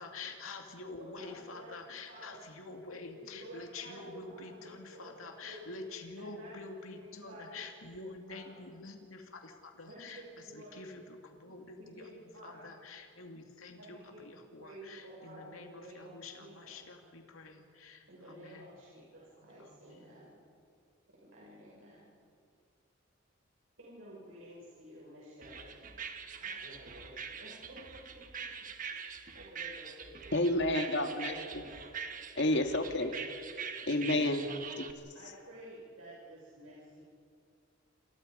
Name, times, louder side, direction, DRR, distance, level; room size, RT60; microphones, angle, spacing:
voice 1, 0.0-10.2 10.5-18.7 19.5-20.2, left 3 dB, 85° left, 3 dB, 2.6 m, -47 dB
voice 2, 1.1-2.5 3.1-5.8 6.2-7.5 7.8-8.4 9.9-10.9 11.8-12.8 13.8-16.7 18.1-20.4 21.2-22.2 23.8-25.9 26.4-28.2 28.9-29.0 29.3-30.3 31.2-32.2 33.0-33.2 34.0-37.0, right 1 dB, 80° right, -6 dB, 6.8 m, -52 dB
sound 1, 25.4-34.9, right 6 dB, 40° right, 1.4 m, -44 dB
voice 3, 30.3-31.3 32.4-33.1 33.9-34.5 34.8-34.9, left 1 dB, 55° left, 5 dB, 2.0 m, -29 dB
28.0 x 27.5 x 5.4 m, 2.4 s
head